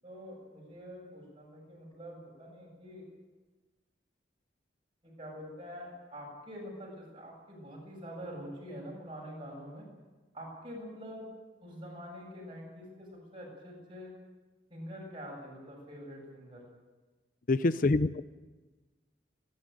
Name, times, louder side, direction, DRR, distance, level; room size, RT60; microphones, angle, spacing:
voice 1, 0.0-3.0 5.0-9.9 10.3-11.3 11.6-14.1 14.7-16.7, equal, 30° right, -2 dB, 7.7 m, -45 dB
voice 2, 17.5-18.2, left 2 dB, 50° left, 14 dB, 0.6 m, -26 dB
27.5 x 11.5 x 9.3 m, 1.3 s
head